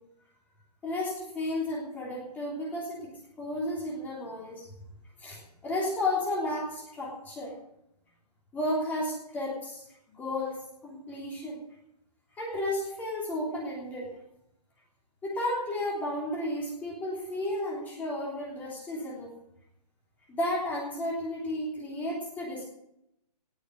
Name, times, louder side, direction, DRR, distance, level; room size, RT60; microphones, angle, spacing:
voice 1, 0.8-3.1 3.4-4.7 5.2-7.5 8.5-9.8 10.1-11.6 12.4-14.1 15.2-19.3 20.4-22.6, left 1 dB, 10° left, -4 dB, 3.3 m, -33 dB
18.0 x 6.7 x 9.7 m, 0.79 s
hypercardioid pair, 160°, 21 cm